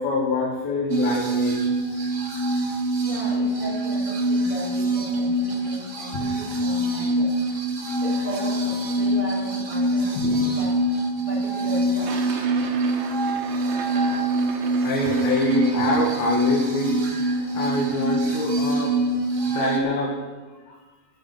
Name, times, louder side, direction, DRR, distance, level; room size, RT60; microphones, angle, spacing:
voice 1, 0.0-2.0 6.1-6.2 10.2-10.5 14.8-18.9 19.5-20.1 20.7-20.8, left 3 dB, 80° left, -2 dB, 3.5 m, -26 dB
sound 1, 0.9-19.8, right 1 dB, 40° right, 1.0 m, -24 dB
voice 2, 3.0-7.4 8.0-10.7 11.2-12.2 15.4-15.5, equal, 35° left, -5 dB, 4.6 m, -36 dB
sound 2, 12.0-17.0, right 6 dB, 80° right, 3.3 m, -37 dB
11.0 x 10.5 x 8.5 m, 1.3 s
omnidirectional pair, 4.3 m